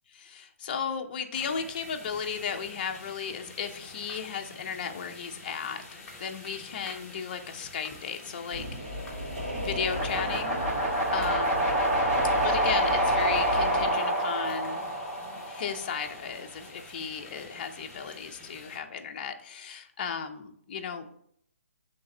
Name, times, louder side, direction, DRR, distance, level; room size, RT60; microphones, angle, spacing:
voice 1, 0.1-8.6 9.6-10.6 11.1-11.7 12.4-14.9 15.5-21.1, left 6 dB, 35° left, 5 dB, 0.6 m, -35 dB
sound 1, 1.3-18.8, left 2 dB, 10° left, 1.1 m, -48 dB
sound 2, 8.5-13.9, equal, 40° right, 2.3 m, -35 dB
sound 3, 9.9-16.0, right 1 dB, 25° right, 1.7 m, -27 dB
5.3 x 3.3 x 5.3 m, 0.68 s
hypercardioid pair, 160°, 8 cm